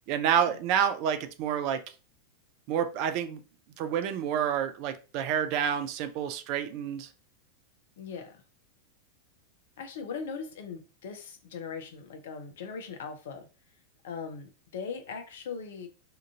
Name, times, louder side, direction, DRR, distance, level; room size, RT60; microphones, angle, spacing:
voice 1, 0.1-1.8 2.7-3.4 3.8-7.1, right 9 dB, 45° right, 0.4 m, -28 dB
voice 2, 8.0-8.4 9.8-13.5 14.0-15.9, left 5 dB, 60° left, 0.5 m, -39 dB
2.8 x 2.4 x 2.3 m
figure-of-eight pair, 90°, 0 cm